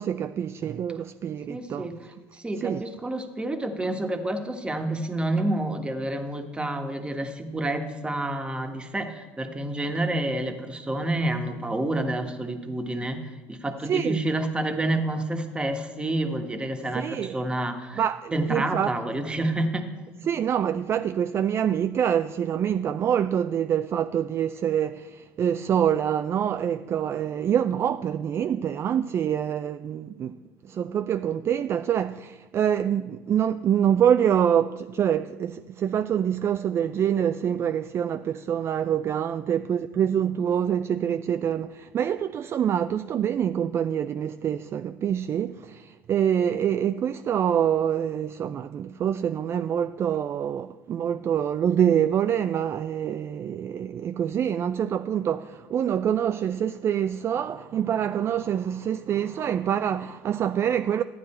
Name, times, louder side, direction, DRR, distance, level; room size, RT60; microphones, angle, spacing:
voice 1, 0.0-1.9 2.6-2.8 13.9-14.2 16.9-17.4 18.0-18.9 20.3-30.4 30.6-61.0, right 9 dB, 40° right, 0.4 m, -25 dB
voice 2, 1.5-18.0 18.3-20.0, right 1 dB, 15° right, 1.3 m, -29 dB
12.0 x 9.3 x 4.3 m
supercardioid pair, 85°, 7 cm